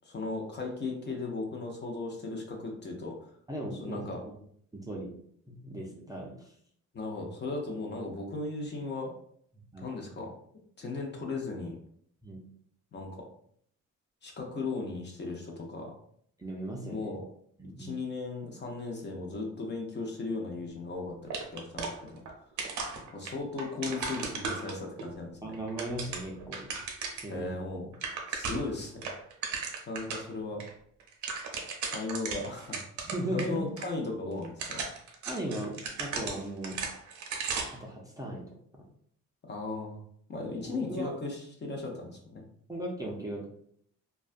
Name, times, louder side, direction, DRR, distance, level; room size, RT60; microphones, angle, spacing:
voice 1, 0.0-3.3 3.7-4.2 6.9-9.1 9.8-10.3 10.8-11.8 12.9-13.3 14.2-15.9 16.9-17.2 17.8-22.2 23.1-25.6 27.3-27.9 28.3-29.1 29.9-30.6 31.8-32.8 33.3-34.8 39.4-40.0 40.3-42.4, left 3 dB, 35° left, 1 dB, 0.7 m, -36 dB
voice 2, 3.5-4.4 4.7-5.1 5.5-6.5 9.7-9.9 12.2-12.4 16.4-17.1 17.6-18.0 25.4-26.7 27.2-27.6 33.0-33.7 35.3-36.8 37.7-38.8 40.4-41.1 42.7-43.5, right 1 dB, 10° right, -2 dB, 0.5 m, -37 dB
sound 1, 21.3-22.3 22.6-25.1 25.5-27.3 27.7-27.8 27.9-28.7 29.0-30.3 30.6-30.7 31.0-33.5 33.8-33.9 34.4-37.8, right 4 dB, 75° right, 0.6 m, -36 dB
2.3 x 2.2 x 2.5 m, 0.64 s
cardioid pair, 90°, 30 cm